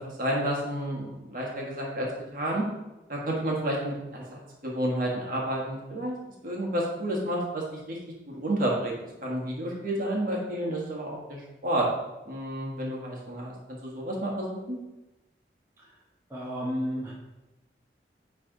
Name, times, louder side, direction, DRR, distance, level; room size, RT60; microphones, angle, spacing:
voice 1, 0.0-2.6 3.1-6.1 6.4-8.0 8.3-11.9 12.2-13.5 13.8-14.8, right 1 dB, 50° right, -3 dB, 1.5 m, -30 dB
voice 2, 16.3-17.1, equal, 15° right, -6 dB, 1.2 m, -31 dB
9.7 x 3.4 x 3.8 m, 1.0 s
head